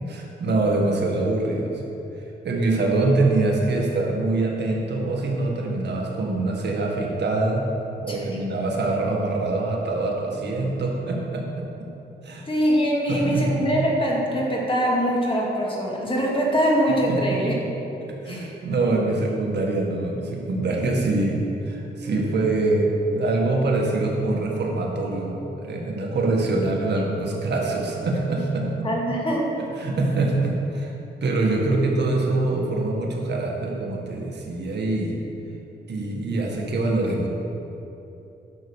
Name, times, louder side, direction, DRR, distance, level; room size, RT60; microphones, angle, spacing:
voice 1, 0.1-1.8 2.4-7.7 8.0-11.9 12.2-12.5 13.1-13.7 17.1-17.4 18.2-28.9 29.8-30.9 31.2-35.2 35.9-37.3, right 2 dB, 65° right, -1 dB, 1.7 m, -24 dB
voice 2, 12.5-17.5 18.3-18.5 18.8-18.9 28.8-29.5, equal, 30° left, -2 dB, 2.2 m, -23 dB
10.5 x 6.7 x 6.3 m, 3.0 s
cardioid pair, 105°, 19 cm